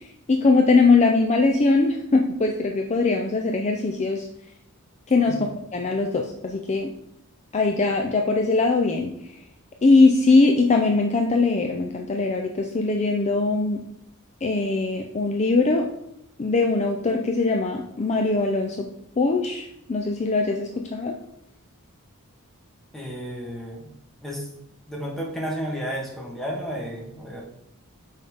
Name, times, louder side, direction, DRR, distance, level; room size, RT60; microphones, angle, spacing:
voice 1, 0.0-4.2 5.1-5.5 5.7-6.9 7.5-9.1 9.8-13.8 14.4-15.9 16.4-18.9 19.2-21.2, left 3 dB, 30° left, 2 dB, 0.5 m, -21 dB
voice 2, 22.9-23.9 24.2-24.5 24.9-27.4, equal, ahead, -2 dB, 1.4 m, -32 dB
5.6 x 3.6 x 5.4 m, 0.78 s
head